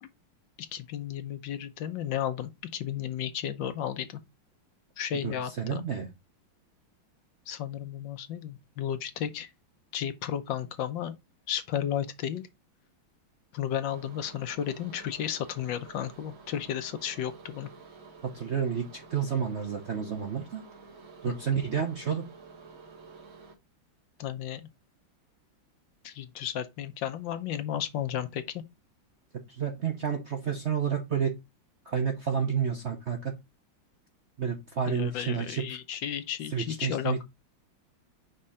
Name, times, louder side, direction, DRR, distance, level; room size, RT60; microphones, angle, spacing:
voice 1, 0.7-4.2 5.0-5.8 7.5-9.5 9.9-11.1 11.5-12.4 13.5-17.7 21.3-21.6 24.2-24.7 26.0-28.6 34.9-37.2, left 10 dB, 70° left, 1.4 m, -33 dB
voice 2, 5.2-6.1 18.2-20.6 21.2-22.2 29.5-31.3 31.9-33.4 34.4-35.8 36.5-37.2, right 7 dB, 50° right, 0.8 m, -30 dB
sound 1, 13.9-23.6, right 4 dB, 75° right, 2.5 m, -51 dB
5.4 x 3.7 x 5.6 m
omnidirectional pair, 2.2 m